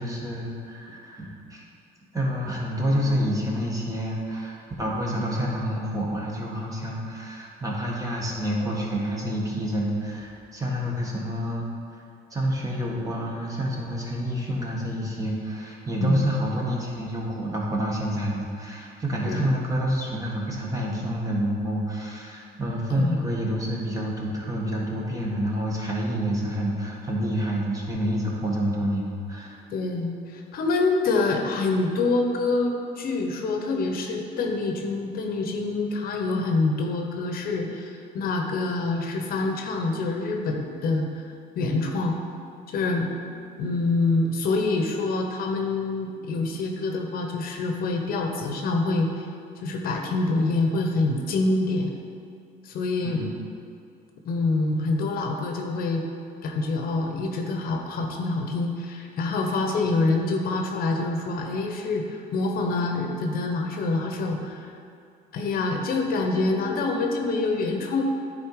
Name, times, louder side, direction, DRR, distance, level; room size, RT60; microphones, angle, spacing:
voice 1, 0.0-1.6 2.1-11.7 12.3-29.6 53.0-53.3, equal, 20° right, -3 dB, 1.6 m, -28 dB
voice 2, 29.7-41.2 41.5-42.2 42.7-43.1 43.6-49.3 49.6-51.9 52.6-53.3 54.2-56.0 56.4-64.7 65.3-68.0, left 3 dB, 60° left, 2 dB, 0.9 m, -26 dB
10.0 x 4.0 x 4.9 m, 2.4 s
cardioid pair, 110°, 17 cm